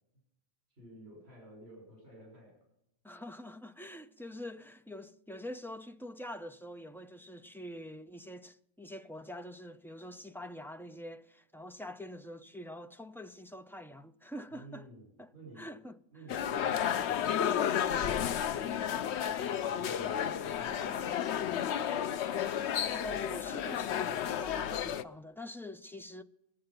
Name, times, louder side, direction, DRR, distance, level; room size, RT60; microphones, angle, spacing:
voice 1, 0.7-2.6 14.5-15.7 16.1-18.8 19.5-21.9, right 1 dB, 70° right, 5.7 m, -53 dB
voice 2, 3.0-14.9 15.2-16.0 18.6-19.1 22.8-26.2, left 1 dB, 5° left, 0.3 m, -45 dB
sound 1, 16.3-25.0, left 9 dB, 90° left, 0.9 m, -32 dB
22.0 x 7.8 x 5.6 m
omnidirectional pair, 1.1 m